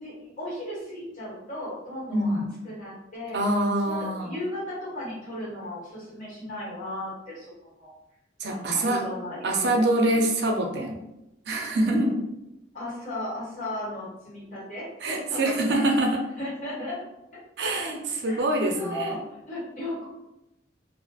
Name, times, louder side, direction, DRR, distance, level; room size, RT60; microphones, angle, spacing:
voice 1, 0.0-3.4 3.8-7.5 7.8-7.9 8.5-9.5 10.1-10.2 11.8-12.2 12.7-15.8 16.4-17.0 18.2-18.4 18.7-20.1, left 1 dB, 45° left, -8 dB, 1.4 m, -35 dB
voice 2, 2.1-2.5 3.3-4.3 8.4-9.0 9.4-11.0 11.5-12.0 15.0-16.2 17.6-19.2, right 1 dB, 65° right, 1 dB, 0.4 m, -25 dB
2.7 x 2.4 x 2.3 m, 0.90 s
head